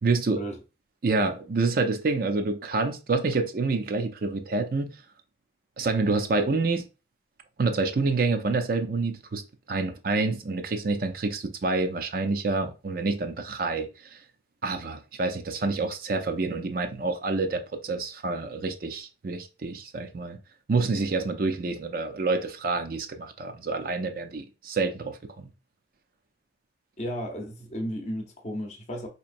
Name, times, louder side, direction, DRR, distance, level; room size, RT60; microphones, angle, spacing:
voice 1, 0.0-0.4 1.0-4.9 5.8-6.8 7.6-9.4 9.7-14.2 14.6-20.4 20.7-25.5, right 3 dB, 50° right, 0.5 m, -27 dB
voice 2, 27.0-29.1, equal, 40° left, 0.7 m, -34 dB
4.2 x 2.9 x 2.6 m
head